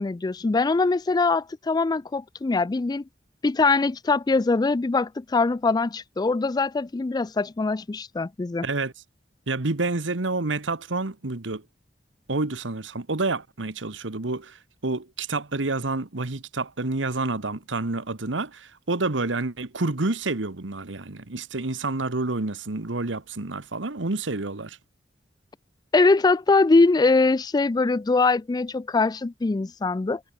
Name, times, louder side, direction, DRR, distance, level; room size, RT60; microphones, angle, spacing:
voice 1, 0.0-3.0 3.4-8.7 25.9-30.2, left 3 dB, 20° left, 0.3 m, -22 dB
voice 2, 8.6-8.9 9.5-11.6 12.3-14.6 14.8-24.8, right 3 dB, 85° right, 1.4 m, -28 dB
head